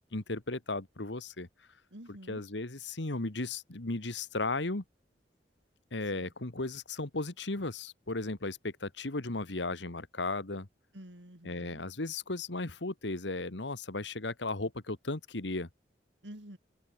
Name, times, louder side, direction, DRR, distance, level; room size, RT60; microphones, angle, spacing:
voice 1, 0.1-1.5 2.3-4.8 5.9-10.7 11.4-15.7, left 2 dB, 80° left, 1.8 m, -35 dB
voice 2, 1.9-2.4 6.1-6.3 10.9-11.8 16.2-16.6, right 1 dB, 80° right, 4.6 m, -49 dB
head